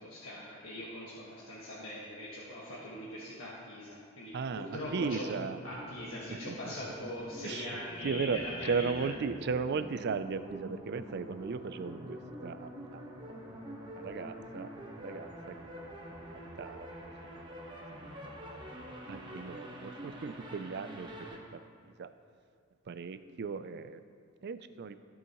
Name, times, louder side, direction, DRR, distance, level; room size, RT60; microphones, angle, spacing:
voice 1, 0.0-5.3 5.6-9.1, left 1 dB, 80° left, -7 dB, 1.5 m, -42 dB
voice 2, 4.3-5.6 6.3-6.7 7.4-13.3 13.6-14.7 15.0-15.5 16.6-16.9 17.3-17.4 19.1-22.1 22.9-24.0 24.4-25.0, right 5 dB, 55° right, 11 dB, 0.4 m, -37 dB
sound 1, 4.5-21.4, equal, 20° right, 1.1 m, -46 dB
16.0 x 6.4 x 3.0 m, 2.2 s
head